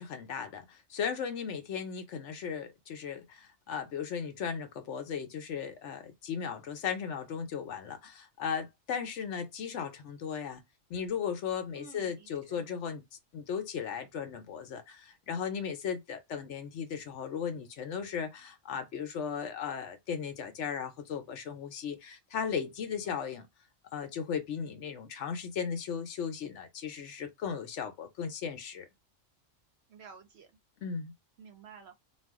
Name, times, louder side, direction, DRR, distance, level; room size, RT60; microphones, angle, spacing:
voice 1, 0.0-10.6 10.9-13.0 13.3-23.5 23.9-28.9 30.8-31.1, left 7 dB, 70° left, 1.0 m, -36 dB
voice 2, 11.7-12.6 23.1-23.2 29.9-30.5 31.4-31.9, right 6 dB, 65° right, 0.7 m, -52 dB
2.4 x 2.2 x 3.5 m
omnidirectional pair, 1.3 m